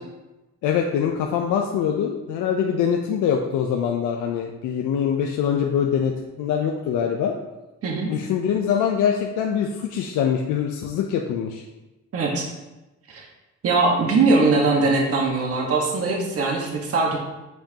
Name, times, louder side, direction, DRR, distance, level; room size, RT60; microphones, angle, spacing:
voice 1, 0.6-7.3 8.1-11.6, left 8 dB, 85° left, 2 dB, 0.6 m, -23 dB
voice 2, 12.1-12.5 13.1-13.2 13.6-17.2, right 3 dB, 50° right, -1 dB, 1.4 m, -21 dB
7.9 x 5.1 x 2.9 m, 1.0 s
cardioid pair, 90°, 30 cm